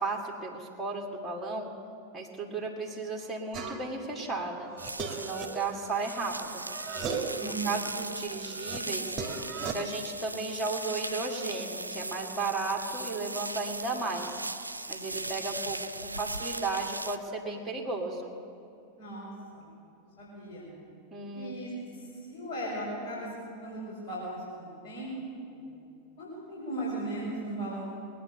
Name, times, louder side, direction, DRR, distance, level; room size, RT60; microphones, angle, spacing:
voice 1, 0.0-1.7 2.1-4.7 5.1-6.6 7.4-9.1 9.6-14.3 14.9-18.3 21.1-21.5, right 3 dB, 5° right, -1 dB, 1.9 m, -34 dB
sound 1, 3.5-4.1 4.5-6.4 6.7-7.5 7.9-9.7, right 5 dB, 25° right, 1.6 m, -37 dB
sound 2, 4.8-17.2, right 2 dB, 80° right, 0.5 m, -38 dB
voice 2, 7.4-8.0 14.9-15.3 19.0-19.7 20.2-20.7 21.3-23.3 23.6-25.1 25.5-25.6 26.2-27.8, right 1 dB, 60° left, -9 dB, 5.1 m, -38 dB
21.0 x 9.5 x 6.8 m, 2.5 s
figure-of-eight pair, 90°, 0 cm